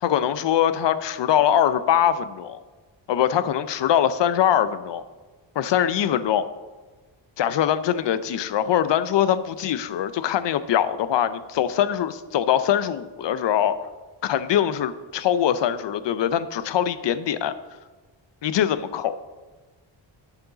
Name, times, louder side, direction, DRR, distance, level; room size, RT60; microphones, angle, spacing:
voice 1, 0.0-2.6 3.1-5.0 5.6-6.5 7.4-13.9 14.2-17.5 18.4-19.1, left 10 dB, 65° left, 13 dB, 0.6 m, -22 dB
10.5 x 7.2 x 3.9 m, 1.3 s
wide cardioid pair, 120°, 46 cm